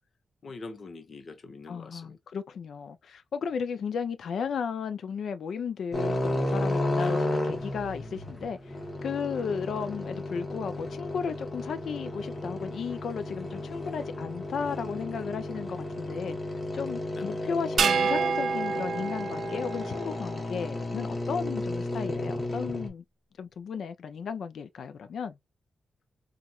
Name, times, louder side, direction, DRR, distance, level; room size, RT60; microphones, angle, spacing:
voice 1, 0.4-2.2 6.9-7.2 9.3-9.6 17.1-17.4 20.5-20.8, left 3 dB, 50° left, 0.9 m, -44 dB
voice 2, 1.7-8.7 9.0-16.4 16.7-23.0 23.4-25.4, left 6 dB, 75° left, 0.5 m, -34 dB
sound 1, 5.9-22.9, left 1 dB, 25° left, 1.3 m, -33 dB
sound 2, 17.8-20.3, right 6 dB, 65° right, 0.3 m, -28 dB
4.2 x 2.5 x 2.4 m
wide cardioid pair, 120°, 0 cm